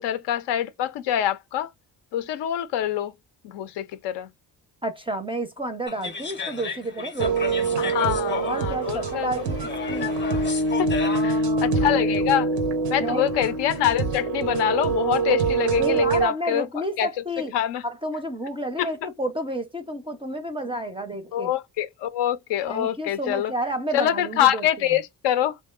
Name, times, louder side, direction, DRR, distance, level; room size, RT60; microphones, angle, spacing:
voice 1, 0.0-1.7 2.1-3.1 3.4-4.3 7.8-9.4 10.8-10.9 11.2-12.5 12.9-17.1 17.5-17.8 18.8-18.9 21.3-23.5 23.9-25.6, left 11 dB, 65° left, 0.5 m, -25 dB
voice 2, 4.8-10.2 10.9-12.3 13.0-13.3 15.8-17.5 17.8-21.5 22.7-24.7, right 1 dB, 10° right, 0.5 m, -31 dB
sound 1, 5.9-11.5, left 5 dB, 25° left, 0.7 m, -34 dB
sound 2, 7.2-16.3, right 3 dB, 90° right, 0.7 m, -25 dB
2.6 x 2.2 x 2.3 m
hypercardioid pair, 50°, 46 cm